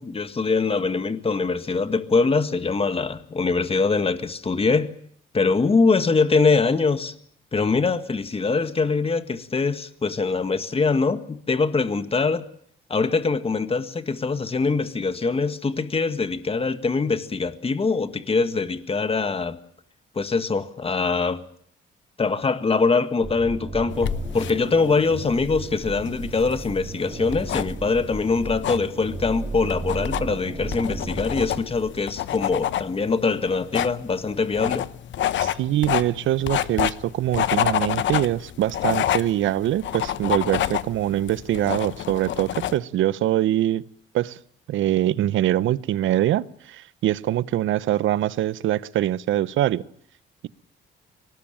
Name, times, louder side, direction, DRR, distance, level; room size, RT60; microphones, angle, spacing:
voice 1, 0.0-4.9 5.3-7.1 7.5-12.5 12.9-19.6 20.2-21.4 22.2-34.9, left 4 dB, 30° left, 1.8 m, -23 dB
sound 1, 23.2-32.1, right 3 dB, 25° right, 3.1 m, -34 dB
sound 2, 23.9-42.8, left 11 dB, 70° left, 1.0 m, -29 dB
voice 2, 35.4-43.8 44.1-44.4 44.7-49.8, right 13 dB, 75° right, 0.9 m, -23 dB
23.0 x 19.0 x 8.9 m
cardioid pair, 90°, 20 cm